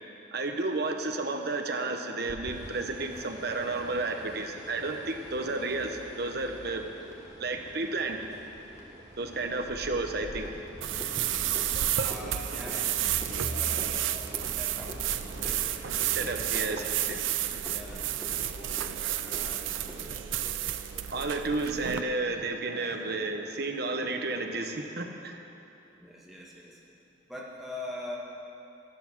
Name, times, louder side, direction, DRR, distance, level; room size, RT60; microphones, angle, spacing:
voice 1, 0.3-6.9 7.4-8.2 8.9-10.5 16.1-17.2 21.1-25.4, right 3 dB, 55° right, 4 dB, 0.9 m, -32 dB
sound 1, 2.3-20.3, equal, 15° left, 1.4 m, -48 dB
sound 2, 2.5-20.5, equal, 20° right, 1.7 m, -47 dB
sound 3, 10.8-22.0, right 11 dB, 85° right, 0.5 m, -31 dB
voice 2, 11.7-16.9 17.6-21.7 22.6-23.1 26.0-26.8 27.3-28.2, left 1 dB, ahead, -5 dB, 1.8 m, -45 dB
12.0 x 11.5 x 6.0 m, 2.8 s
head